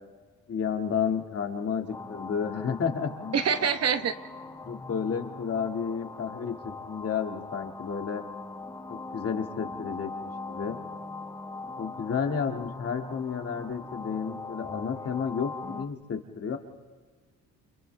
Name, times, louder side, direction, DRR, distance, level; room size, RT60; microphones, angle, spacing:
voice 1, 0.5-3.7 4.6-8.2 8.9-10.8 11.8-16.6, left 6 dB, 50° left, 4 dB, 2.1 m, -31 dB
sound 1, 1.9-15.8, left 3 dB, 10° left, 1.4 m, -41 dB
voice 2, 3.3-4.1, right 7 dB, 55° right, 10 dB, 1.1 m, -25 dB
29.0 x 28.0 x 3.4 m, 1.4 s
cardioid pair, 90°, 30 cm